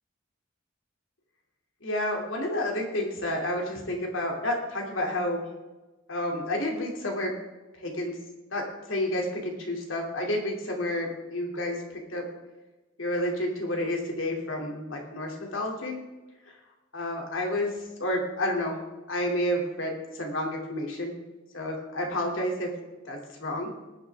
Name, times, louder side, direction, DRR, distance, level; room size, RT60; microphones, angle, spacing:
voice 1, 1.8-5.5 6.1-7.3 7.8-8.2 8.5-12.3 13.0-16.0 16.5-16.6 16.9-17.7 18.0-18.7 19.1-21.1 21.5-22.7 23.0-23.7, left 1 dB, 75° left, 1 dB, 2.9 m, -30 dB
19.5 x 9.7 x 3.6 m, 1.1 s
head